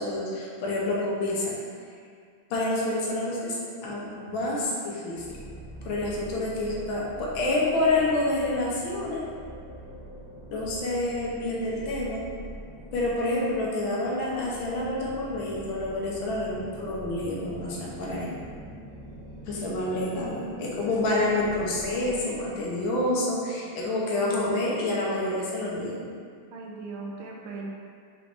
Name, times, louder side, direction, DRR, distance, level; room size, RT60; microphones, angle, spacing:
voice 1, 0.0-1.6 2.5-5.4 5.8-9.2 10.5-12.2 12.9-18.3 19.5-26.1, left 2 dB, 75° left, -4 dB, 1.5 m, -28 dB
sound 1, 5.1-22.6, equal, 25° left, 0.6 m, -44 dB
voice 2, 26.5-27.7, right 3 dB, 80° right, -1 dB, 1.5 m, -38 dB
5.1 x 3.0 x 3.3 m, 2.2 s
omnidirectional pair, 2.3 m